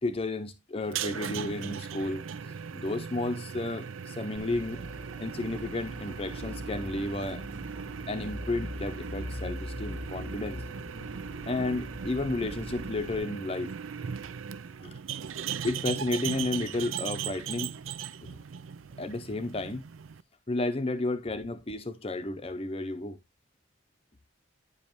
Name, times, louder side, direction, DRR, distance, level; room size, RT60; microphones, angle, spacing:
voice 1, 0.0-2.3 2.7-7.4 8.1-10.6 11.5-13.7 15.6-17.7 18.2-18.3 19.0-19.8 20.5-23.2, left 2 dB, 30° left, 0.6 m, -32 dB
sound 1, 0.8-20.2, right 7 dB, 90° right, 0.5 m, -38 dB
sound 2, 4.4-13.2, left 1 dB, 70° right, 1.7 m, -42 dB
9.8 x 5.3 x 3.0 m
head